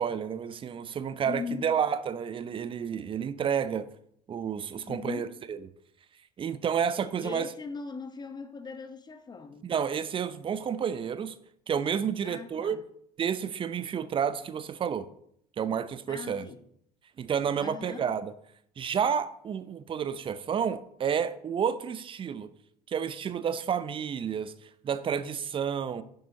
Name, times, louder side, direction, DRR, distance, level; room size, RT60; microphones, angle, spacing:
voice 1, 0.0-3.9 4.3-5.6 6.4-7.5 9.6-11.3 11.7-12.8 13.2-15.1 15.6-16.5 17.2-18.3 18.8-22.5 22.9-24.5 24.8-26.0, right 7 dB, 25° right, 0.7 m, -30 dB
voice 2, 1.2-1.7 4.9-5.3 7.2-9.7 12.2-12.8 16.1-16.6 17.6-18.1, left 5 dB, 20° left, 1.2 m, -39 dB
10.5 x 10.5 x 2.9 m
figure-of-eight pair, 65°, 21 cm